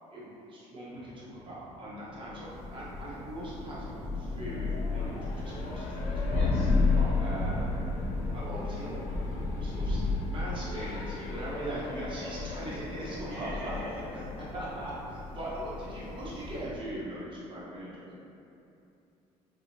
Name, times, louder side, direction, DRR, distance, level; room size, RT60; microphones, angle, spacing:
voice 1, 0.1-6.5 6.9-7.7 8.3-13.7 14.1-18.1, right 1 dB, 35° right, -8 dB, 0.9 m, -40 dB
Race car auto racing, 0.9-15.0, left 2 dB, 65° left, 0.4 m, -46 dB
Thunder, 2.3-16.9, left 3 dB, 20° left, 0.6 m, -33 dB
voice 2, 6.3-6.7 13.2-14.3, equal, 70° right, -9 dB, 0.7 m, -41 dB
2.8 x 2.1 x 2.6 m, 2.7 s
supercardioid pair, 75°, 15 cm